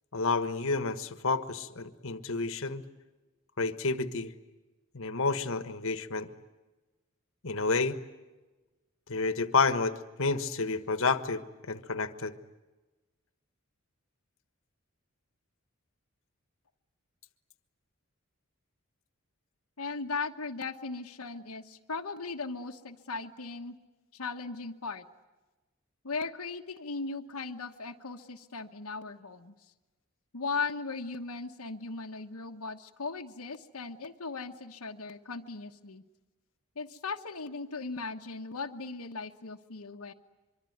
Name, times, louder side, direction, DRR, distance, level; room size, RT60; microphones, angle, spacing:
voice 1, 0.1-2.8 3.6-4.3 4.9-6.3 7.4-8.0 9.1-12.3, left 4 dB, 65° left, 11 dB, 1.4 m, -30 dB
voice 2, 19.8-23.8 24.1-25.0 26.0-29.5 30.3-36.0 36.8-40.1, left 4 dB, 85° left, 3 dB, 1.2 m, -38 dB
24.5 x 24.5 x 9.4 m, 1.2 s
head